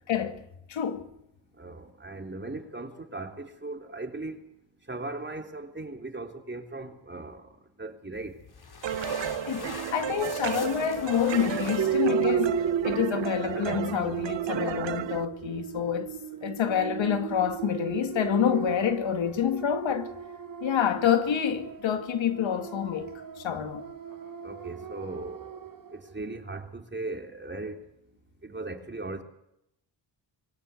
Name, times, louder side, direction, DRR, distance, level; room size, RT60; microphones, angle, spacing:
voice 1, 0.1-0.4 0.7-1.0 9.5-12.6 12.8-16.1 16.4-20.1 20.6-23.9, left 9 dB, 80° left, 2.2 m, -27 dB
voice 2, 1.6-4.4 4.9-7.4 7.8-8.3 24.4-25.5 26.1-27.8 28.4-29.2, right 2 dB, 25° right, 3.6 m, -38 dB
sound 1, 8.1-13.2, left 4 dB, 55° left, 4.5 m, -43 dB
sound 2, 8.8-15.3, right 11 dB, 70° right, 1.1 m, -33 dB
sound 3, 11.8-26.0, right 8 dB, 45° right, 1.6 m, -34 dB
23.5 x 17.0 x 8.3 m
cardioid pair, 65°, 46 cm